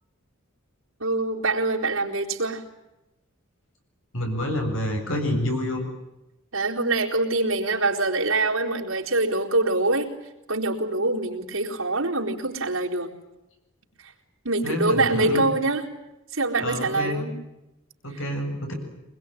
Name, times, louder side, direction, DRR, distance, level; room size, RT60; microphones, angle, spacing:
voice 1, 1.0-2.6 6.5-10.1 10.5-13.1 14.0-14.1 14.4-15.8 16.3-17.4, right 2 dB, 90° right, -1 dB, 4.1 m, -24 dB
voice 2, 4.1-5.9 14.6-15.4 16.6-17.3 18.0-18.7, left 1 dB, 70° left, 3 dB, 7.8 m, -28 dB
24.5 x 21.5 x 9.2 m, 0.94 s
head